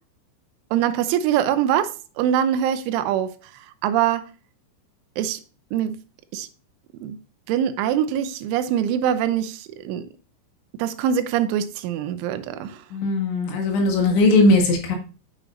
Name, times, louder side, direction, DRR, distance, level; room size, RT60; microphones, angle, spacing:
voice 1, 0.7-3.4 3.8-4.3 5.2-5.4 5.7-6.0 6.3-6.5 7.0-7.2 7.5-10.1 10.8-12.8, right 10 dB, 85° right, 3.1 m, -23 dB
voice 2, 12.9-15.0, left 2 dB, 75° left, 4.0 m, -18 dB
9.2 x 6.0 x 2.6 m
omnidirectional pair, 5.4 m